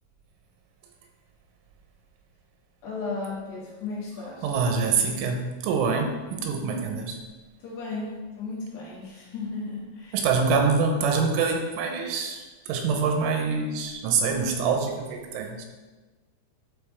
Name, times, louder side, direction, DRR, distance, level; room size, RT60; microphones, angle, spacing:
voice 1, 2.8-4.6 7.6-10.2, left 3 dB, 60° left, -7 dB, 4.0 m, -35 dB
voice 2, 4.4-7.2 10.1-15.7, right 5 dB, 85° right, 3 dB, 3.3 m, -25 dB
12.0 x 5.2 x 3.5 m, 1.3 s
omnidirectional pair, 5.7 m